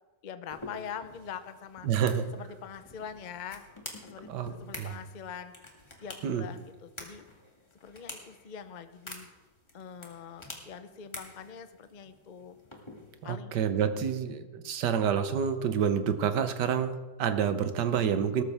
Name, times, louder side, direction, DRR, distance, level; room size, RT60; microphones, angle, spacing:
voice 1, 0.2-1.9 2.3-3.6 4.0-5.5 6.0-7.2 7.8-9.3 9.7-12.6 13.2-13.6 13.9-14.1 14.4-14.7, left 7 dB, 70° left, 10 dB, 0.4 m, -43 dB
sound 1, 0.5-13.4, left 1 dB, 15° left, 1.8 m, -48 dB
voice 2, 1.8-2.3 4.3-5.0 6.2-6.4 13.2-18.4, right 8 dB, 75° right, 10 dB, 1.5 m, -28 dB
19.0 x 13.0 x 3.5 m, 1.2 s
omnidirectional pair, 1.9 m